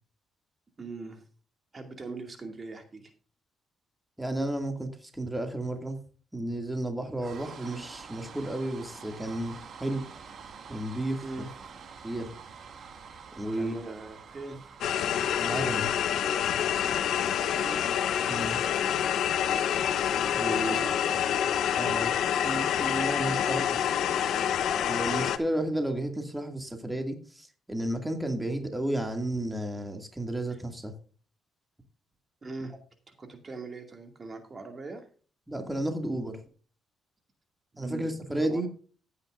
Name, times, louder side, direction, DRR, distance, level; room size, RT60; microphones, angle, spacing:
voice 1, 0.8-1.2 1.7-3.1 11.2-11.5 13.5-14.7 17.3-17.9 18.7-19.1 20.5-21.2 23.4-23.7 32.4-32.8 33.1-35.1 37.7-38.6, right 3 dB, 35° right, 5 dB, 2.4 m, -41 dB
voice 2, 4.2-6.0 6.3-10.0 10.7-11.2 12.0-12.3 13.4-13.7 15.4-15.9 18.3-18.6 20.3-20.8 21.8-23.9 24.9-30.9 35.5-36.4 37.8-38.7, right 1 dB, 10° right, 4 dB, 2.3 m, -32 dB
sound 1, 7.2-17.5, right 6 dB, 55° right, 2.2 m, -47 dB
sound 2, 14.8-25.4, left 9 dB, 75° left, 0.9 m, -27 dB
15.0 x 9.8 x 2.6 m, 0.39 s
cardioid pair, 90°, 0 cm